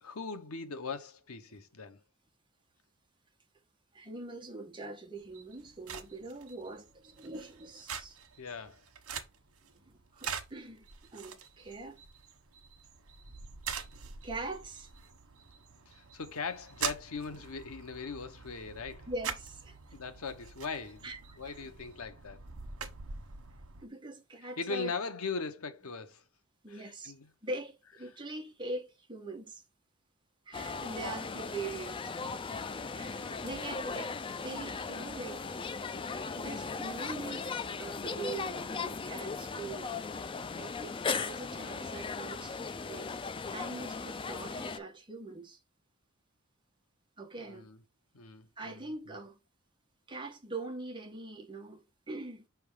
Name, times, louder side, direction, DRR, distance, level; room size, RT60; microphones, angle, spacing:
voice 1, 0.0-2.0 8.4-8.8 15.9-19.1 19.9-22.4 24.6-26.2 26.7-27.3 31.0-31.3 32.9-33.8 36.5-36.7 47.4-47.8 48.1-49.2, left 4 dB, 90° left, 0.9 m, -40 dB
voice 2, 3.9-8.2 9.7-10.8 11.1-12.0 14.2-14.9 18.7-18.8 19.1-20.0 21.0-21.7 23.8-24.9 26.6-27.1 27.4-29.6 30.5-32.1 32.9-35.5 36.4-37.5 37.8-40.0 40.5-42.5 42.9-43.1 43.5-45.6 47.2-47.7 48.6-49.4 50.1-52.4, right 2 dB, 20° right, 1.3 m, -43 dB
sound 1, 5.2-23.9, right 6 dB, 90° right, 1.1 m, -44 dB
sound 2, 30.5-44.8, left 4 dB, 25° left, 0.4 m, -37 dB
5.8 x 3.5 x 4.8 m
head